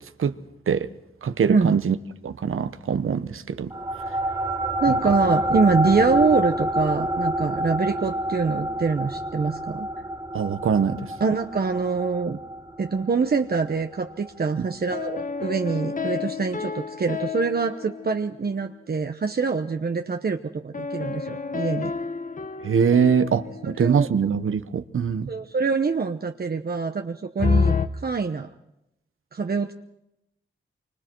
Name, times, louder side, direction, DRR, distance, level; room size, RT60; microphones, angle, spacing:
voice 1, 1.2-2.0 2.2-3.7 10.3-11.0 22.6-25.3, right 7 dB, 80° right, 12 dB, 1.0 m, -23 dB
sound 1, 3.7-14.5, equal, 15° right, 1.2 m, -27 dB
voice 2, 4.8-9.9 11.2-12.4 12.8-21.9 23.6-24.1 25.3-28.5 29.3-29.7, right 4 dB, 50° right, 6 dB, 0.9 m, -25 dB
sound 2, 14.9-18.7 20.7-24.3 27.4-27.9, left 5 dB, 40° left, 0.9 m, -29 dB
28.0 x 25.0 x 4.6 m, 0.84 s
wide cardioid pair, 110°, 21 cm